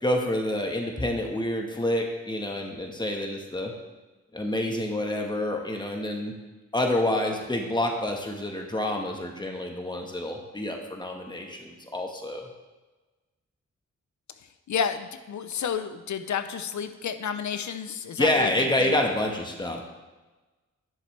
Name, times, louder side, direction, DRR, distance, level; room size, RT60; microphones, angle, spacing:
voice 1, 0.0-3.7 4.3-6.3 6.7-12.5 18.2-19.8, left 1 dB, 15° left, 2 dB, 1.4 m, -28 dB
voice 2, 14.7-18.9, left 7 dB, 70° left, 10 dB, 0.7 m, -31 dB
11.0 x 6.6 x 3.3 m, 1.2 s
cardioid pair, 55°, 30 cm